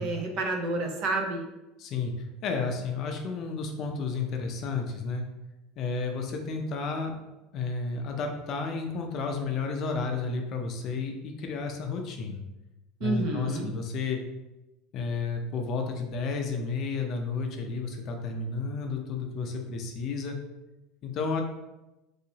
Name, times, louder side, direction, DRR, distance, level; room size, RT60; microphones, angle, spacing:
voice 1, 0.0-1.5 13.0-13.7, right 2 dB, 55° right, 2 dB, 0.6 m, -29 dB
voice 2, 1.8-2.1 2.4-5.3 5.8-7.1 7.5-12.4 13.0-14.2 14.9-20.4 21.0-21.4, left 4 dB, 40° left, 3 dB, 0.5 m, -32 dB
3.1 x 2.8 x 2.7 m, 1.0 s
supercardioid pair, 140°, 0 cm